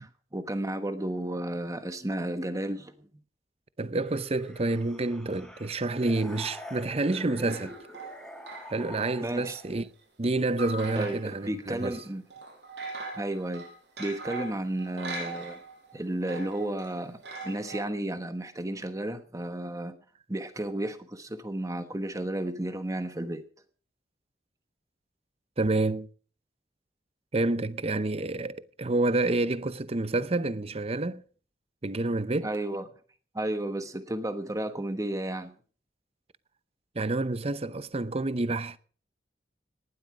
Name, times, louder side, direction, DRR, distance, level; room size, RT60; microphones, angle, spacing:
voice 1, 0.0-3.1 9.2-9.5 11.0-12.2 13.2-13.7 14.0-15.6 15.9-20.0 20.3-23.4 32.4-32.8 33.3-35.5, right 1 dB, 20° right, 1.2 m, -33 dB
voice 2, 3.8-7.7 8.7-9.8 10.2-12.0 25.6-26.1 27.3-31.2 31.8-32.5 36.9-38.8, right 2 dB, 35° right, 0.7 m, -28 dB
sound 1, 4.0-9.9, equal, 5° left, 3.9 m, -46 dB
sound 2, 7.5-9.1 9.4-9.6 10.6-11.5 11.8-12.0 12.3-15.9 16.2-17.8, right 3 dB, 80° right, 5.7 m, -40 dB
18.5 x 12.0 x 4.9 m
head